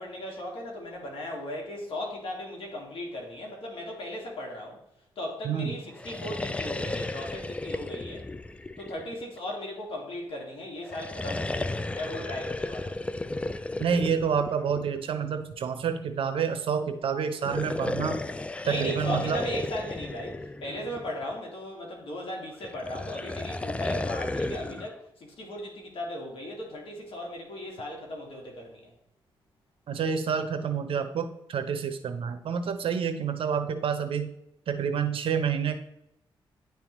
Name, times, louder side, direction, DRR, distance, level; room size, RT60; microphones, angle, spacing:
voice 1, 0.0-4.8 5.2-8.3 8.8-13.0 18.6-28.9, left 1 dB, 70° left, 0 dB, 1.8 m, -37 dB
voice 2, 5.4-5.8 13.8-18.2 18.7-19.4 29.9-34.3 34.7-35.7, right 7 dB, 70° right, 8 dB, 0.7 m, -28 dB
sound 1, 5.9-9.5 10.8-15.1 17.3-21.3 22.6-24.9, left 2 dB, 10° left, 0.3 m, -34 dB
9.9 x 3.5 x 3.0 m, 0.81 s
cardioid pair, 80°, 10 cm